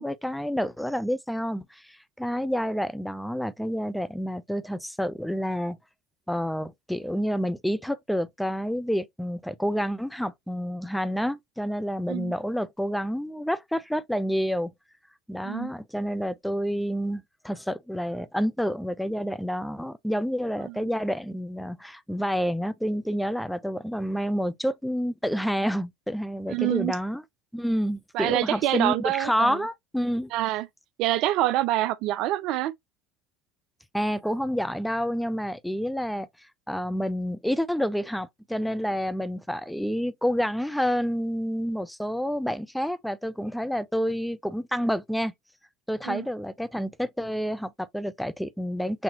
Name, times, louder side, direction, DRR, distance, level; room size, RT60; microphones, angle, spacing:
voice 1, 0.0-5.8 6.3-14.7 15.3-27.2 27.5-30.3 33.9-36.3 36.7-45.3 45.9-49.0, equal, 5° left, 0.5 m, -29 dB
voice 2, 26.5-27.0 28.1-29.6 30.3-30.7 31.0-32.7 46.0-46.2, right 15 dB, 60° right, 0.4 m, -26 dB
5.9 x 2.7 x 2.8 m
hypercardioid pair, 80°, 0 cm